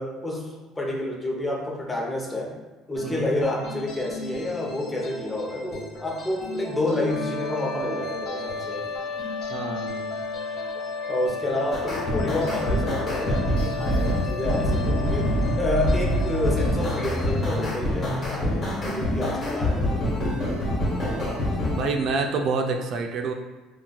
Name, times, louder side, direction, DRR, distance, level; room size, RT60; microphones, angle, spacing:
voice 1, 0.0-2.6 2.9-8.9 11.1-20.1, left 2 dB, 15° left, -1 dB, 0.6 m, -29 dB
sound 1, 3.0-17.7, left 2 dB, 55° left, 0.9 m, -38 dB
sound 2, 7.0-18.0, left 4 dB, 80° left, 0.3 m, -34 dB
voice 2, 9.5-10.1 21.0-21.4 21.7-23.3, right 4 dB, 55° right, 3 dB, 0.3 m, -28 dB
sound 3, 11.7-21.8, equal, 35° left, 1.0 m, -25 dB
3.7 x 2.4 x 2.2 m, 1.2 s
supercardioid pair, 95°, 0 cm